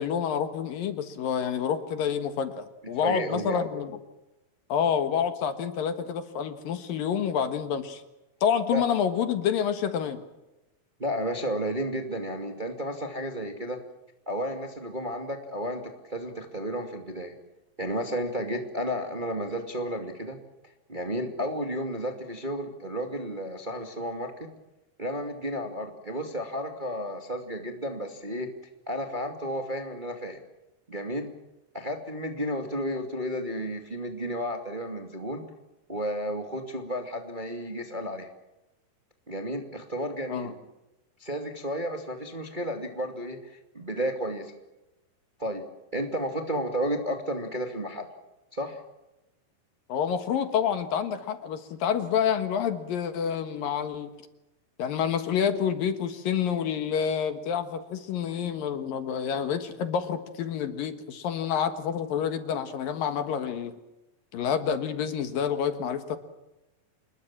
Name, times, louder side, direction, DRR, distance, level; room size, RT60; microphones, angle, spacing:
voice 1, 0.0-4.0 4.7-8.0 8.4-10.2 40.3-40.5 49.9-54.1 54.8-63.7 64.3-66.2, left 8 dB, 65° left, 9 dB, 3.0 m, -28 dB
voice 2, 3.0-3.6 8.7-8.8 11.0-13.8 14.3-17.3 17.8-20.4 20.9-24.5 25.0-28.5 28.9-30.4 30.9-31.3 31.7-35.4 35.9-38.3 39.3-40.5 41.2-44.5 45.4-45.6 45.9-48.1 48.5-48.8, equal, 15° right, 4 dB, 1.8 m, -32 dB
27.5 x 21.5 x 7.4 m, 0.98 s
omnidirectional pair, 4.6 m